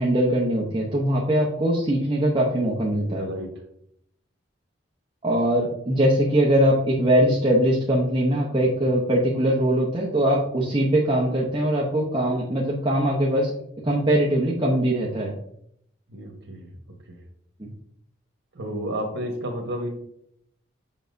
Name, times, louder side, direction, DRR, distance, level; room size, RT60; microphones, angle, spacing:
voice 1, 0.0-3.2 5.2-13.5 13.8-15.3 17.6-17.7, right 1 dB, 25° right, -4 dB, 0.9 m, -21 dB
voice 2, 3.0-3.5 16.1-16.7 17.1-17.2 18.5-19.9, equal, 90° right, 0 dB, 1.2 m, -31 dB
7.1 x 5.8 x 2.6 m, 0.71 s
head